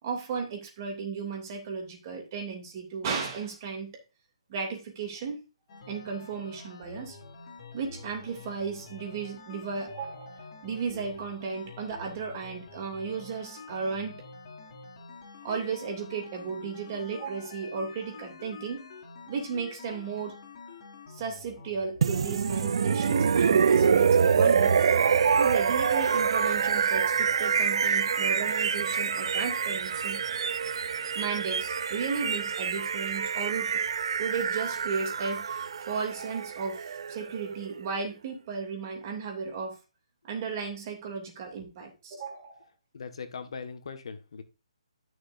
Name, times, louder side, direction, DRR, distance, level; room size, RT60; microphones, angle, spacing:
voice 1, 0.0-3.9 4.5-5.4 5.9-7.2 7.7-14.2 15.4-18.8 19.3-20.4 21.1-24.8 25.4-30.2 31.1-33.7 34.2-39.8 40.2-42.7, right 5 dB, 35° right, 2.7 m, -35 dB
sound 1, 5.7-22.8, left 4 dB, 40° left, 3.0 m, -47 dB
sound 2, 22.0-37.9, right 6 dB, 60° right, 0.6 m, -26 dB
voice 2, 42.9-44.4, left 5 dB, 60° left, 1.5 m, -40 dB
12.5 x 6.4 x 2.6 m
hypercardioid pair, 155°, 3 cm